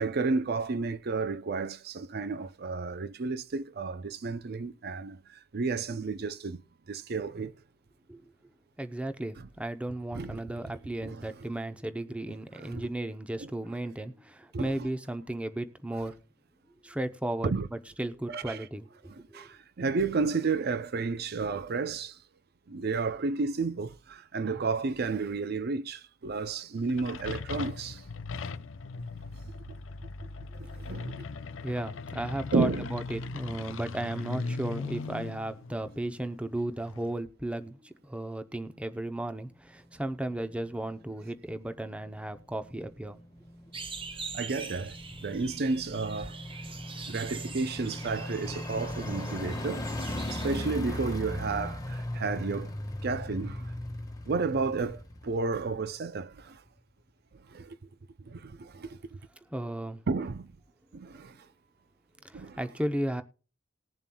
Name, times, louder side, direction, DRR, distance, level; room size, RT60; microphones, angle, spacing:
voice 1, 0.0-6.6 6.9-7.5 10.1-10.7 11.0-11.3 12.6-12.9 13.4-13.5 14.5-14.7 17.4-17.7 18.3-18.7 19.1-22.2 22.7-28.0 30.6-31.3 32.5-32.9 44.3-45.0 45.2-46.4 47.1-49.8 50.3-52.7 53.0-53.7 54.3-56.6 57.5-57.8 58.3-59.0 60.1-60.5 60.9-61.5 62.3-62.6, right 4 dB, 55° right, 0.5 m, -32 dB
voice 2, 8.8-16.2 16.8-17.5 18.0-19.5 30.6-30.7 31.6-43.2 59.5-60.0 62.2-63.2, right 1 dB, 5° right, 0.6 m, -35 dB
sound 1, 26.8-37.1, left 4 dB, 75° left, 0.5 m, -39 dB
sound 2, 39.5-56.0 56.4-56.5, left 1 dB, 20° left, 1.4 m, -39 dB
sound 3, 43.7-50.6, right 4 dB, 25° right, 1.0 m, -43 dB
20.0 x 7.2 x 2.3 m
head